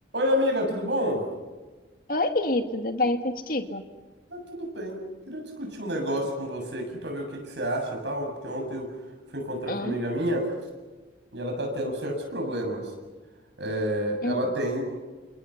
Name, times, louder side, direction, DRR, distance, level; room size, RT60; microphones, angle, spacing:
voice 1, 0.1-1.2 4.3-8.9 9.3-10.5 11.3-12.9 13.6-14.8, equal, 70° right, 2 dB, 7.5 m, -29 dB
voice 2, 2.1-3.8 9.7-10.0 14.2-14.4, left 2 dB, 50° left, 7 dB, 2.1 m, -27 dB
29.0 x 28.5 x 5.9 m, 1.3 s
head